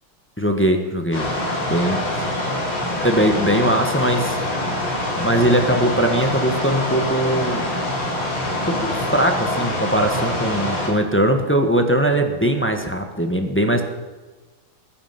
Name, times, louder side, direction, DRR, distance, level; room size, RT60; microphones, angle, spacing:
voice 1, 0.4-1.3 1.6-2.3 3.0-4.8 5.2-7.6 8.7-13.8, right 1 dB, 5° left, 4 dB, 1.1 m, -20 dB
sound 1, 1.1-10.9, left 1 dB, 85° left, 4.8 m, -25 dB
21.0 x 10.5 x 6.0 m, 1.3 s
omnidirectional pair, 2.3 m